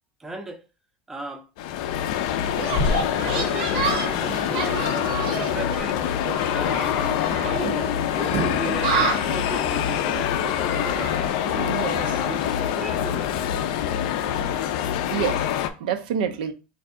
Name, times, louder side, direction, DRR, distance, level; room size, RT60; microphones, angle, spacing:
voice 1, 0.2-0.6 1.1-1.5 3.3-6.0 6.5-11.4 12.0-13.6, right 2 dB, 10° right, 0.4 m, -36 dB
sound 1, 1.6-15.7, left 9 dB, 60° left, 0.4 m, -25 dB
sound 2, 2.5-12.5, right 5 dB, 70° right, 0.9 m, -31 dB
voice 2, 11.5-12.2 15.1-16.5, right 8 dB, 90° right, 0.5 m, -28 dB
3.2 x 2.6 x 3.6 m
supercardioid pair, 165°, 5 cm